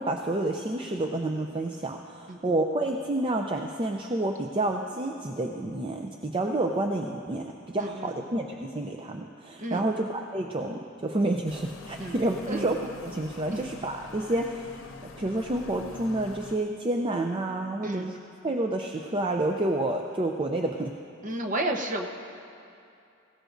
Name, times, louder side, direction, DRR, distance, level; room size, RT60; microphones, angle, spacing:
voice 1, 0.0-14.8 15.2-18.2 18.4-20.9, right 1 dB, 25° right, 3 dB, 0.5 m, -29 dB
voice 2, 7.8-8.1 9.6-9.9 12.0-12.2 12.5-12.7 13.5-13.6 17.8-18.1 21.2-22.1, right 1 dB, 40° right, 3 dB, 1.0 m, -32 dB
sound 1, 11.5-16.6, left 3 dB, 80° left, 0.7 m, -45 dB
18.5 x 17.0 x 2.6 m, 2.6 s
head